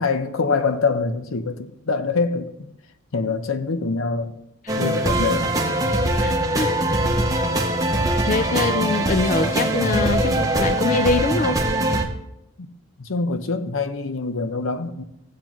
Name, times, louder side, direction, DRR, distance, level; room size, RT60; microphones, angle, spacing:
voice 1, 0.0-2.5 3.1-4.3 4.8-5.5 12.6-12.7 13.0-15.0, left 4 dB, 70° left, 0.7 m, -24 dB
sound 1, 4.7-12.1, right 1 dB, 15° right, 0.8 m, -22 dB
voice 2, 6.2-6.7 8.3-11.6, left 3 dB, 35° left, 0.3 m, -23 dB
15.5 x 7.5 x 3.0 m
head